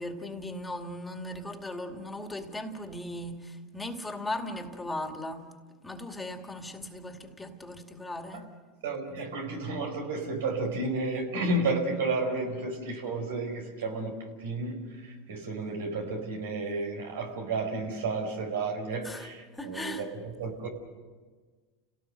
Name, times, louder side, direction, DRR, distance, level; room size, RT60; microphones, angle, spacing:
voice 1, 0.0-5.5 5.8-8.5 19.0-19.3 19.5-20.1, left 1 dB, 10° left, 2.3 m, -38 dB
voice 2, 8.8-20.7, right 3 dB, 85° right, 4.9 m, -32 dB
30.0 x 18.0 x 6.7 m
hypercardioid pair, 100°, 0 cm